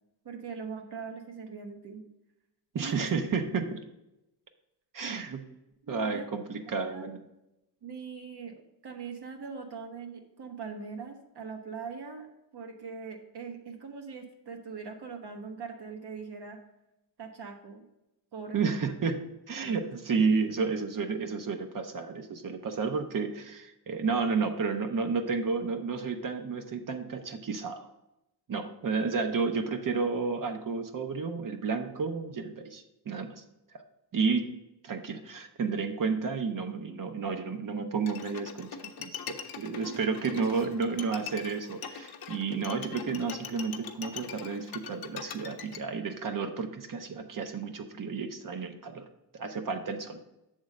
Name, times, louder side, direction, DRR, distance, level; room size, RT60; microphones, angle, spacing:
voice 1, 0.2-2.0 2.8-3.2 5.8-6.4 6.7-7.1 7.8-8.6 8.8-12.3 12.5-16.6 17.2-17.8 18.3-18.9 19.6-19.8 39.8-39.9, right 5 dB, 75° right, 4 dB, 1.2 m, -41 dB
voice 2, 2.7-3.8 4.9-5.4 5.9-7.2 18.5-19.2 19.5-27.8 28.5-33.4 34.1-34.6 34.8-38.7 39.0-49.0 49.3-50.2, right 5 dB, 50° right, 6 dB, 0.7 m, -31 dB
Bowed string instrument, 38.1-45.8, left 7 dB, 60° left, 0.7 m, -42 dB
7.3 x 3.6 x 6.4 m, 0.91 s
wide cardioid pair, 150°, 41 cm